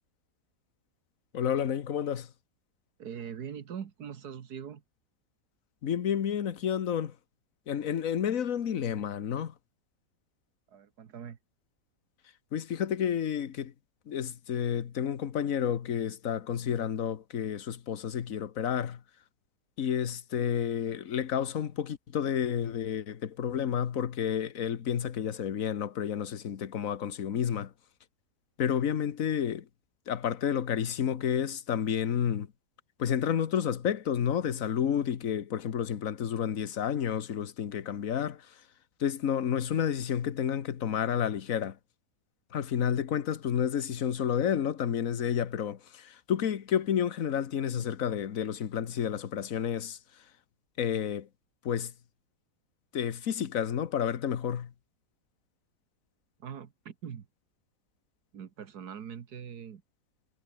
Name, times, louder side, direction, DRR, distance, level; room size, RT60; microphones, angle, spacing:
voice 1, 1.3-2.3 5.8-7.1 7.7-9.5 12.5-13.7 14.1-19.0 19.8-27.7 28.6-29.7 30.1-32.5 33.0-38.5 39.0-41.8 42.5-50.0 50.8-51.3 51.6-51.9 52.9-54.7, left 8 dB, 55° left, 1.5 m, -30 dB
voice 2, 3.0-4.8 10.7-11.4 56.4-57.3 58.3-59.8, right 8 dB, 70° right, 1.9 m, -42 dB
omnidirectional pair, 1.8 m